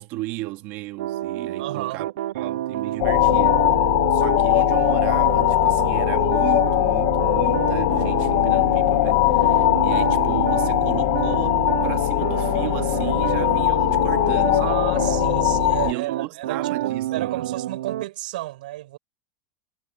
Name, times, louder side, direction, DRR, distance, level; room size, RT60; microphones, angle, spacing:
voice 1, 0.0-3.6 4.1-14.8 15.9-17.5, right 19 dB, 40° right, 1.8 m, -35 dB
sound 1, 1.0-18.1, right 13 dB, 85° right, 0.6 m, -28 dB
voice 2, 1.6-2.1 14.4-19.0, right 17 dB, 65° right, 6.5 m, -32 dB
sound 2, 3.0-15.9, left 20 dB, 50° left, 1.5 m, -20 dB
sound 3, 7.5-15.2, left 12 dB, 90° left, 0.8 m, -32 dB
supercardioid pair, 170°, 5 cm